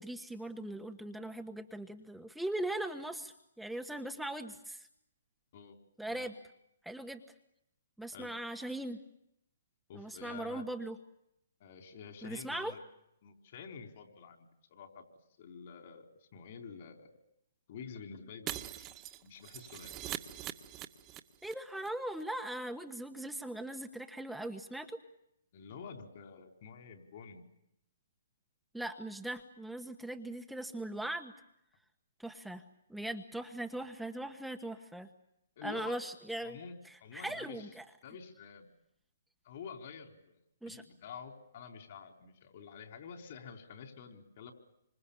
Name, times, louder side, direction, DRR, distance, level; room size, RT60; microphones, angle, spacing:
voice 1, 0.0-4.9 6.0-6.3 6.8-7.2 8.0-9.0 9.9-11.0 12.2-12.7 21.4-25.0 28.7-31.3 32.2-32.6 32.9-35.1 35.6-36.6 36.8-37.8 40.6-40.8, right 1 dB, ahead, 5 dB, 1.3 m, -40 dB
voice 2, 9.9-10.7 11.6-12.8 13.2-14.4 14.7-15.0 15.4-17.1 17.7-18.6 19.2-20.1 25.5-27.4 35.6-36.0 36.4-37.7 38.0-38.7 39.4-40.4 40.6-44.5, left 6 dB, 50° left, 4 dB, 4.3 m, -48 dB
Shatter, 18.5-21.5 21.8-21.9 22.2-22.3, right 13 dB, 25° right, 1.6 m, -43 dB
27.5 x 26.0 x 7.2 m, 0.79 s
hypercardioid pair, 135°, 0 cm